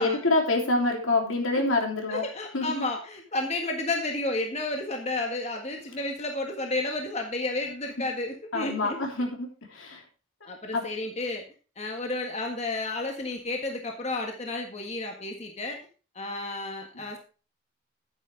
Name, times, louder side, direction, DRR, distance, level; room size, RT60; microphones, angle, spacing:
voice 1, 0.0-2.2 2.5-2.7 8.5-10.0 10.7-10.8, left 2 dB, 80° left, 1 dB, 3.1 m, -26 dB
voice 2, 2.1-9.0 10.5-11.4 11.8-15.8 16.1-17.2, left 2 dB, 30° left, 2 dB, 1.6 m, -32 dB
10.5 x 9.4 x 3.4 m, 0.35 s
head